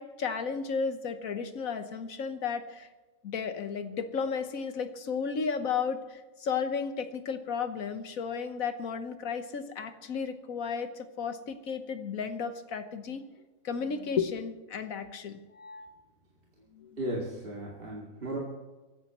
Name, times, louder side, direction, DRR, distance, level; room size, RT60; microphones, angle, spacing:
voice 1, 0.0-2.9 3.2-13.2 13.6-16.0 16.7-17.0, left 6 dB, 80° left, 9 dB, 1.6 m, -33 dB
voice 2, 17.0-18.4, right 1 dB, 40° right, -3 dB, 2.5 m, -35 dB
24.0 x 14.0 x 3.1 m, 1.2 s
omnidirectional pair, 1.4 m